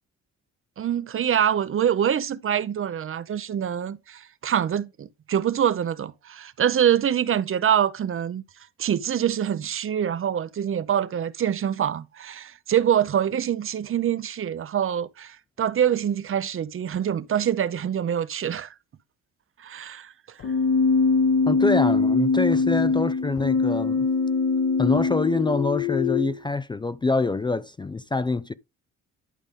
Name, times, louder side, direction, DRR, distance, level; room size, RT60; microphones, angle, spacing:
voice 1, 0.8-8.4 8.8-18.7 19.6-20.4, right 9 dB, 45° right, 0.7 m, -25 dB
Keyboard (musical), 20.4-26.4, left 4 dB, 50° left, 1.2 m, -22 dB
voice 2, 21.5-24.1 24.8-28.5, left 3 dB, 15° left, 0.4 m, -25 dB
11.0 x 5.0 x 3.6 m
cardioid pair, 90°, 30 cm